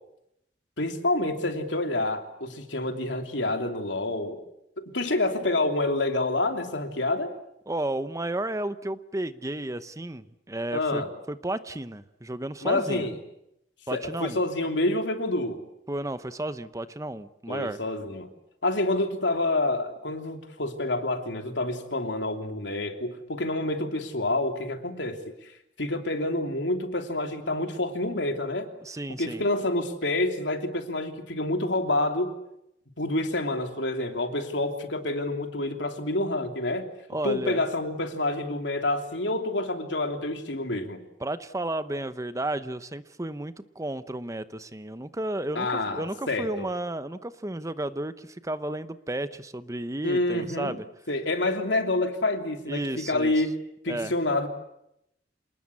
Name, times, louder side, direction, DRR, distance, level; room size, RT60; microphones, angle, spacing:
voice 1, 0.8-4.4 4.8-7.3 10.7-11.1 12.6-13.1 13.9-15.6 17.5-18.3 18.6-25.5 25.8-28.7 29.2-32.3 33.0-36.9 37.2-41.0 45.5-46.7 50.0-50.8 51.1-53.6 53.8-54.5, left 2 dB, 90° left, 5 dB, 3.1 m, -28 dB
voice 2, 7.7-13.1 13.9-14.4 15.9-17.8 28.8-29.4 37.1-37.6 41.2-50.8 52.7-53.3 53.9-54.1, right 1 dB, 20° right, 12 dB, 0.9 m, -33 dB
27.5 x 20.0 x 8.5 m, 0.81 s
head